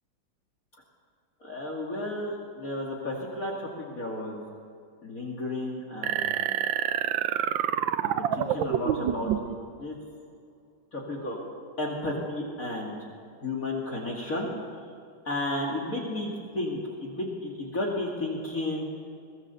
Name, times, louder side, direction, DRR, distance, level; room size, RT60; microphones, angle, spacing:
voice 1, 1.4-4.5 5.0-6.6 8.0-9.9 10.9-11.4 11.8-13.0 13.4-14.5 15.2-16.3 16.5-18.8, left 2 dB, 45° left, -2 dB, 2.8 m, -33 dB
sound 1, 6.0-9.6, right 10 dB, 75° right, 1.4 m, -27 dB
23.0 x 17.5 x 6.9 m, 2.4 s
omnidirectional pair, 2.1 m